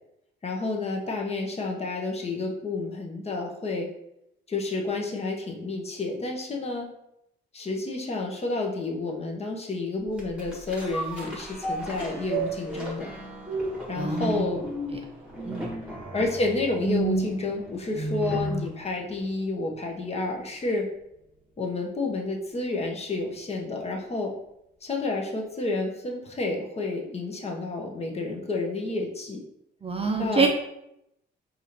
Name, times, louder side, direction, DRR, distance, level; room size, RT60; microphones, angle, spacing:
voice 1, 0.4-3.9 4.5-6.9 7.5-13.1 13.9-14.7 16.1-20.9 21.6-24.3 24.8-29.4 30.2-30.5, left 3 dB, 30° left, 0 dB, 0.9 m, -30 dB
sound 1, 10.2-18.7 19.2-19.3, right 2 dB, 5° right, 1.3 m, -32 dB
voice 2, 13.9-14.5 14.9-15.0 15.4-15.7 29.8-30.5, right 4 dB, 30° right, 2 dB, 0.5 m, -26 dB
4.8 x 2.5 x 2.9 m, 0.81 s
cardioid pair, 90°, 20 cm